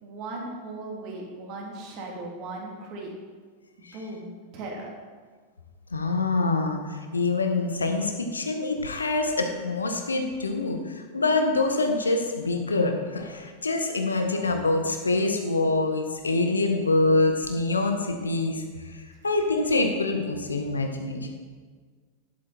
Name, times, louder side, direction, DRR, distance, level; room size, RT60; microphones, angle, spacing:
voice 1, 0.0-3.1 3.9-4.9, right 2 dB, 40° right, -1 dB, 3.2 m, -37 dB
voice 2, 5.9-18.6 18.9-21.3, left 2 dB, 75° left, 5 dB, 1.4 m, -25 dB
12.0 x 11.0 x 4.4 m, 1.5 s
figure-of-eight pair, 90°, 0 cm